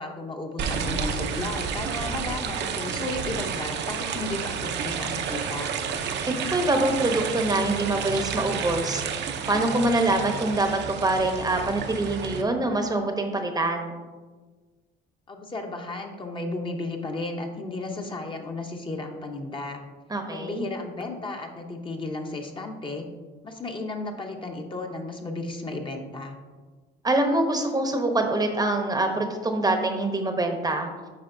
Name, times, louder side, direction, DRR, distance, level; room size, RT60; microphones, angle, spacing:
voice 1, 0.0-5.7 15.3-19.8 20.3-23.1 23.4-26.4, left 2 dB, 25° left, 2 dB, 0.8 m, -34 dB
sound 1, 0.6-12.4, right 6 dB, 60° right, 0.7 m, -31 dB
voice 2, 6.4-9.0 9.5-13.9 20.1-20.7 27.0-30.9, right 2 dB, 20° right, 5 dB, 0.8 m, -25 dB
8.4 x 5.2 x 2.6 m, 1.3 s
cardioid pair, 95°, 20 cm